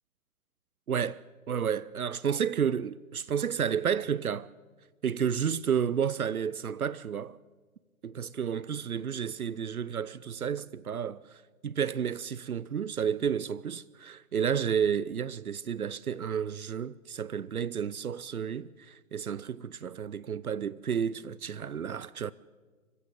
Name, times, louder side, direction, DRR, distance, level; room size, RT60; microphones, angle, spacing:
voice 1, 0.9-1.2 1.5-4.5 5.0-7.4 8.0-22.3, right 7 dB, 80° right, 0.7 m, -31 dB
25.0 x 15.0 x 8.3 m
figure-of-eight pair, 125°, 43 cm